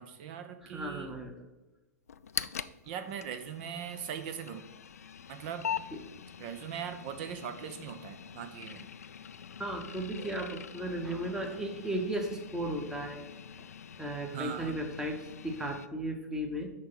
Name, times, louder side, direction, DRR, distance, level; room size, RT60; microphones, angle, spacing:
voice 1, 0.0-1.1 2.9-4.6 5.3-5.7 6.4-8.9 14.3-14.8, right 8 dB, 40° right, 8 dB, 0.6 m, -40 dB
voice 2, 0.6-1.3 5.9-6.0 9.6-13.2 13.6-13.7 14.0-16.7, right 1 dB, 5° right, 3 dB, 1.0 m, -35 dB
sound 1, 2.1-15.9, left 8 dB, 65° left, 0.3 m, -43 dB
6.5 x 4.6 x 5.6 m, 1.1 s
figure-of-eight pair, 105°, 9 cm